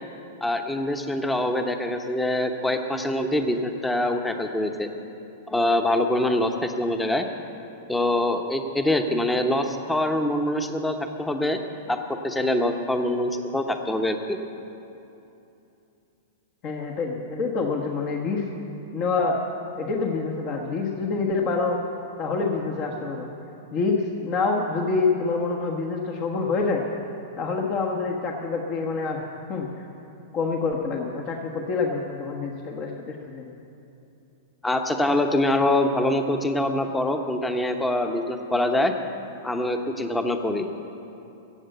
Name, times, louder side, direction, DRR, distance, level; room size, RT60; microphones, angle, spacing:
voice 1, 0.4-4.9 5.5-7.2 7.9-11.6 11.9-14.4 34.6-38.9 39.4-40.7, left 1 dB, 10° left, 6 dB, 1.0 m, -24 dB
voice 2, 16.6-18.4 18.9-19.4 19.8-21.8 22.2-23.3 23.7-26.8 27.4-29.2 29.5-29.9 30.3-33.5, left 4 dB, 40° left, 0 dB, 1.3 m, -26 dB
15.0 x 8.0 x 8.0 m, 2.8 s
hypercardioid pair, 105°, 0 cm